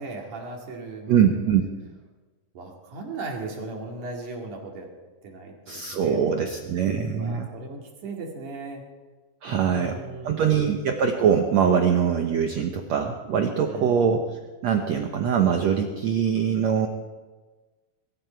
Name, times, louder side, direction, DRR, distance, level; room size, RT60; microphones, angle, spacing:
voice 1, 0.0-1.2 2.5-4.9 5.2-6.7 7.2-8.8 9.5-10.8 13.6-14.1, right 3 dB, 55° right, 0 dB, 3.7 m, -37 dB
voice 2, 1.1-1.7 5.7-7.5 9.4-16.9, right 7 dB, 90° right, 4 dB, 1.5 m, -23 dB
23.5 x 13.0 x 4.5 m, 1.3 s
omnidirectional pair, 4.5 m